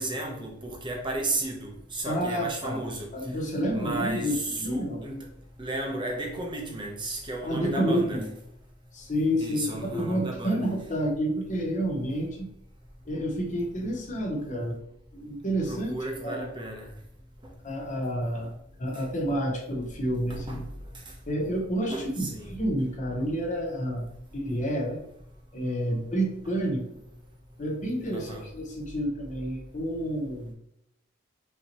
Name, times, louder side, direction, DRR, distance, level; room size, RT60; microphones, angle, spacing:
voice 1, 0.0-3.1 3.7-5.3 5.6-8.3 9.4-10.7 15.7-16.9 18.3-18.4 20.3-20.6 21.9-22.6 28.1-28.5, right 2 dB, 25° right, 0.8 m, -33 dB
voice 2, 2.0-2.8 3.1-4.4 4.6-5.0 7.4-8.3 8.9-12.5 13.1-14.8 15.1-15.9 16.2-16.4 17.6-18.5 18.8-20.7 21.3-24.1 24.3-25.0 25.5-26.8 27.6-30.5, equal, 35° left, 0.9 m, -29 dB
5.4 x 2.9 x 2.9 m
head